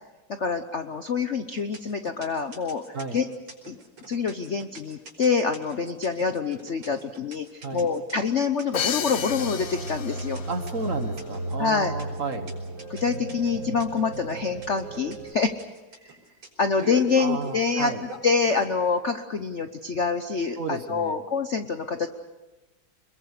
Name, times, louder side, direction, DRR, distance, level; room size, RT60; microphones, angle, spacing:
voice 1, 0.3-3.3 3.7-3.8 4.1-10.4 11.6-11.9 12.9-15.5 16.1-16.2 16.6-17.9 18.2-22.1, left 5 dB, 50° left, 8 dB, 0.9 m, -26 dB
sound 1, 1.6-18.7, right 4 dB, 90° right, 5.7 m, -42 dB
Crash cymbal, 8.7-10.6, left 9 dB, 85° left, 1.9 m, -32 dB
sound 2, 8.7-15.3, right 2 dB, 60° right, 5.6 m, -35 dB
voice 2, 10.5-12.5 17.2-18.0 20.6-21.2, right 4 dB, 40° right, 8 dB, 1.7 m, -32 dB
26.5 x 22.0 x 6.7 m, 1.2 s
omnidirectional pair, 2.2 m